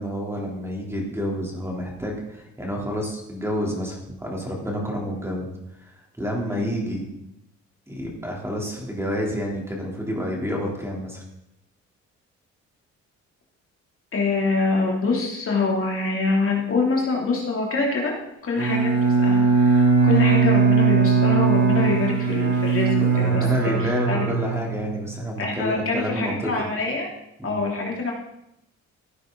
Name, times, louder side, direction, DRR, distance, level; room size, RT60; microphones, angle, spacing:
voice 1, 0.0-5.5 5.8-7.0 7.9-11.2 23.2-26.5 27.4-27.6, equal, 10° right, -2 dB, 3.4 m, -29 dB
voice 2, 14.1-18.1 18.4-24.2 25.4-27.1 27.4-28.1, left 3 dB, 45° left, -1 dB, 3.1 m, -25 dB
Bowed string instrument, 18.6-25.2, right 4 dB, 60° right, 3.1 m, -20 dB
15.5 x 9.0 x 4.0 m, 0.83 s
cardioid pair, 90°, 30 cm